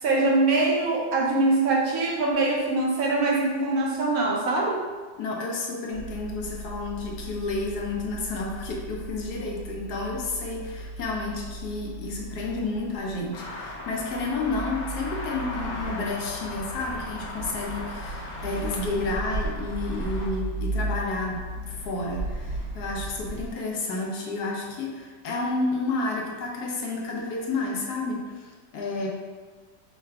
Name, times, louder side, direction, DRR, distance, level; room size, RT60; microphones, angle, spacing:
voice 1, 0.0-4.8, right 2 dB, 60° right, -2 dB, 1.2 m, -23 dB
voice 2, 5.2-29.1, left 3 dB, 70° left, -1 dB, 1.2 m, -31 dB
sound 1, 5.9-23.5, right 2 dB, 85° right, 1.4 m, -36 dB
sound 2, 13.3-20.3, left 2 dB, 85° left, 1.6 m, -38 dB
5.7 x 2.2 x 3.3 m, 1.5 s
omnidirectional pair, 1.9 m